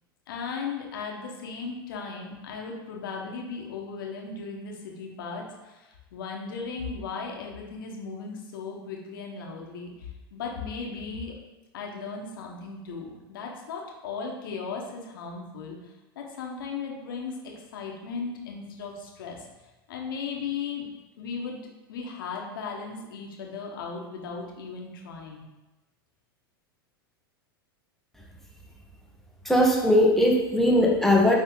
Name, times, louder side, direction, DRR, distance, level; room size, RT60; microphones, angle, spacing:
voice 1, 0.3-11.3 11.7-19.5 19.9-20.8 21.2-21.6 21.9-25.5, left 5 dB, 65° left, 0 dB, 1.5 m, -36 dB
voice 2, 29.4-31.4, left 1 dB, ahead, -1 dB, 1.3 m, -20 dB
9.5 x 3.6 x 3.9 m, 1.1 s
figure-of-eight pair, 90°, 12 cm